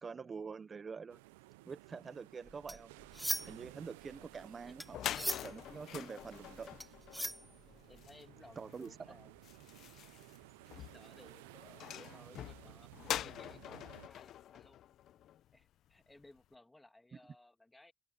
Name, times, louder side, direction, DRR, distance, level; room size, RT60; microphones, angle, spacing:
voice 1, 0.0-1.2 1.6-2.9 3.4-5.0 5.4-6.8 8.6-9.0, right 5 dB, 40° right, 0.9 m, -46 dB
sound 1, 1.1-14.1, right 21 dB, 90° right, 0.5 m, -57 dB
sound 2, 2.5-3.7 4.0-8.0, equal, ahead, 0.3 m, -41 dB
sound 3, 4.5-4.6 4.8-15.6, left 12 dB, 70° left, 0.8 m, -45 dB
voice 2, 5.8-6.4 7.9-9.3 10.8-14.8 15.5-17.9, left 2 dB, 15° left, 2.4 m, -61 dB
hypercardioid pair, 55°, 0 cm